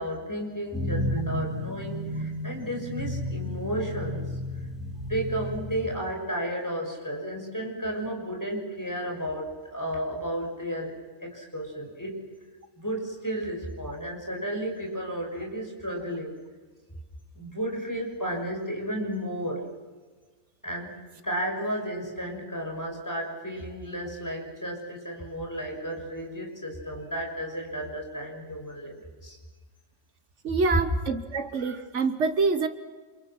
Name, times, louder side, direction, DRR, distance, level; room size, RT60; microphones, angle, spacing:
voice 1, 0.0-4.3 5.1-10.9 11.2-12.2 12.8-16.4 17.3-19.7 20.6-21.0 21.2-29.4, equal, 15° left, 1 dB, 6.4 m, -33 dB
sound 1, 0.7-6.0, left 1 dB, ahead, 3.7 m, -32 dB
voice 2, 30.4-32.7, right 4 dB, 75° right, 9 dB, 1.5 m, -26 dB
29.5 x 28.0 x 6.1 m, 1.4 s
omnidirectional pair, 1.2 m